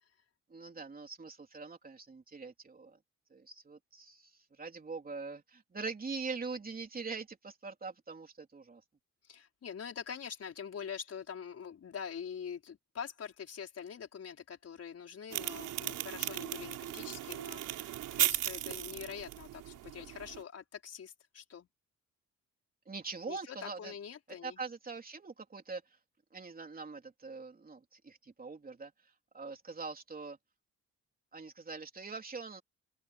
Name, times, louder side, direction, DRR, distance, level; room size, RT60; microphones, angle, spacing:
voice 1, 0.5-3.0 3.3-8.8 22.9-23.9 24.4-25.8 26.3-28.9 29.3-30.4 31.3-32.6, right 4 dB, 30° right, 3.5 m, -43 dB
voice 2, 9.3-21.7 23.3-24.6, left 7 dB, 55° left, 5.1 m, -44 dB
sound 1, 15.3-20.4, right 13 dB, 85° right, 5.1 m, -36 dB
open air
cardioid pair, 90°, 30 cm